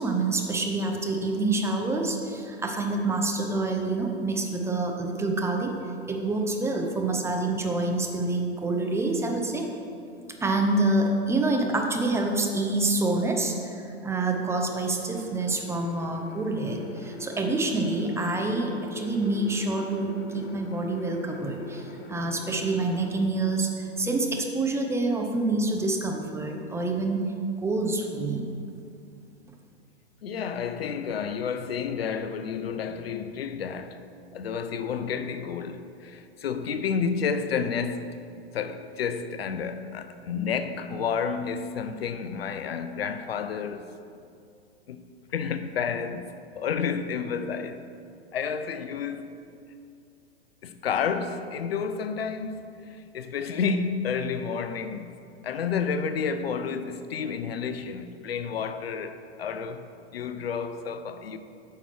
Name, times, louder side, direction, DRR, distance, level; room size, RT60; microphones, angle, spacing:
voice 1, 0.0-5.7 6.1-9.6 10.4-27.2 27.6-28.4, right 2 dB, 10° right, 0.7 m, -27 dB
sound 1, 15.1-23.1, left 4 dB, 35° left, 0.9 m, -43 dB
voice 2, 30.2-34.0 34.3-38.2 38.5-43.9 44.9-45.0 45.3-47.8 48.3-49.3 50.6-55.2 55.4-61.4, left 6 dB, 70° left, 0.6 m, -30 dB
8.9 x 5.7 x 4.7 m
figure-of-eight pair, 100°, 32 cm